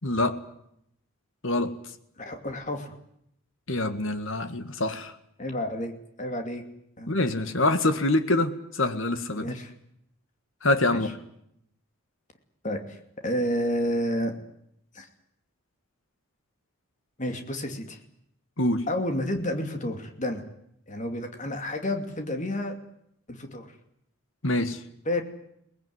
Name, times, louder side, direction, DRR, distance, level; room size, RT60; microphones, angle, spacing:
voice 1, 0.0-0.4 1.4-1.7 3.7-5.1 7.1-9.5 10.6-11.1 18.6-18.8 24.4-24.8, left 2 dB, 60° left, 10 dB, 1.9 m, -25 dB
voice 2, 2.2-2.9 5.4-5.9 6.2-6.6 7.0-7.1 9.4-9.7 10.9-11.0 12.6-13.0 13.2-14.3 14.9-15.1 17.2-18.0 18.9-20.4 20.9-22.8 23.3-23.7 25.1-25.2, left 1 dB, 35° left, 5 dB, 2.7 m, -30 dB
23.0 x 19.5 x 9.6 m, 0.75 s
head